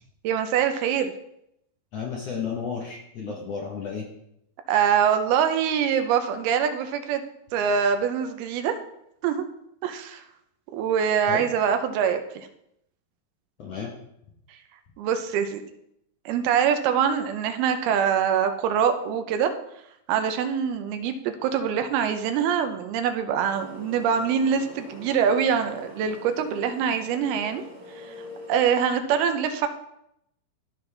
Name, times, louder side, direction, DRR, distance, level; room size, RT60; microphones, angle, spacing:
voice 1, 0.2-1.1 4.7-7.2 7.5-8.8 9.2-9.4 9.8-10.2 10.7-12.5 15.0-15.6 16.3-19.5 20.1-27.6 28.0-28.1 28.5-29.7, right 7 dB, 85° right, 7 dB, 2.8 m, -24 dB
voice 2, 1.9-4.1 11.3-11.4 13.6-13.9, left 6 dB, 65° left, -2 dB, 1.6 m, -32 dB
sound 1, 23.5-28.6, left 1 dB, 10° right, 2.7 m, -43 dB
14.5 x 5.4 x 3.4 m, 0.79 s
omnidirectional pair, 4.3 m